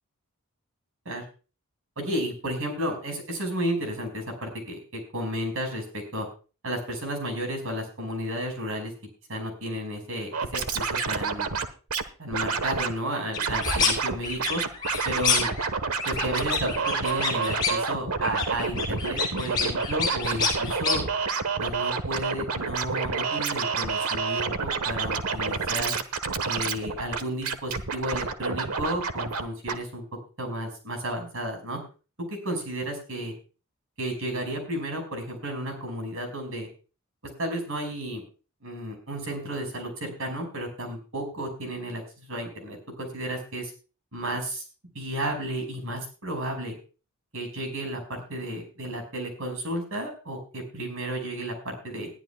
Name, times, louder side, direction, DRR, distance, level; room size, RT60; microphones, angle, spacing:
voice 1, 2.0-6.3 6.6-8.9 9.3-11.5 12.2-14.6 15.0-15.5 16.1-21.0 21.6-26.0 26.4-30.0 30.4-31.8 32.3-33.3 34.0-36.7 37.4-38.2 38.6-43.7 44.1-44.6 44.9-46.7 47.3-52.1, right 1 dB, 65° right, 5 dB, 5.5 m, -32 dB
Scratching (performance technique), 10.3-12.0 12.3-12.9 13.4-14.1 14.4-29.4 29.7-29.8, right 5 dB, 90° right, 1.3 m, -29 dB
sound 1, 13.3-13.9 14.2-15.7 16.0-17.9 18.2-21.0, left 5 dB, 20° left, 7.3 m, -28 dB
20.5 x 12.0 x 2.3 m, 0.36 s
head